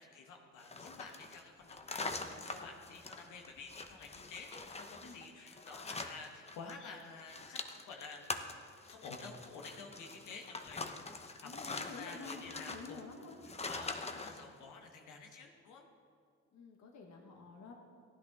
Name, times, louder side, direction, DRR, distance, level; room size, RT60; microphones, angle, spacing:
voice 1, 0.0-8.3 8.8-10.9 11.3-13.0 13.4-15.8, left 4 dB, 85° left, 1 dB, 1.2 m, -51 dB
sound 1, 0.6-6.7 7.0-14.4, left 3 dB, 20° left, 0.8 m, -44 dB
voice 2, 11.4-13.4 16.5-17.7, left 4 dB, 65° left, 1 dB, 1.5 m, -50 dB
15.0 x 10.5 x 3.6 m, 2.2 s
cardioid pair, 90°, 30 cm